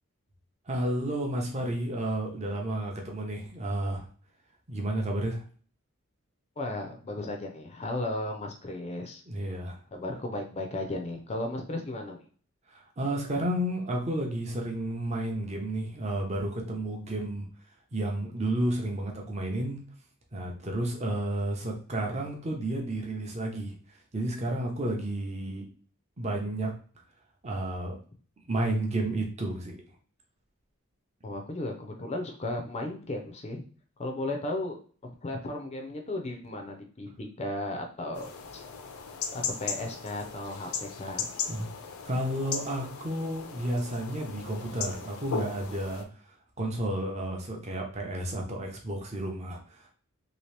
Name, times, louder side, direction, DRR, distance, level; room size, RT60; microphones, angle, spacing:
voice 1, 0.7-4.1 4.7-5.4 9.3-9.8 12.7-17.5 17.9-19.8 20.3-23.7 24.1-25.6 26.2-26.7 27.4-28.0 28.5-29.8 41.5-41.7 42.0-49.9, right 1 dB, 30° right, 1 dB, 0.7 m, -31 dB
voice 2, 6.6-9.2 9.9-12.2 31.2-33.6 34.0-38.3 39.3-41.3, left 2 dB, 30° left, 3 dB, 0.4 m, -35 dB
sound 1, 38.1-46.0, left 6 dB, 80° left, 0.5 m, -37 dB
2.9 x 2.8 x 3.2 m, 0.43 s
head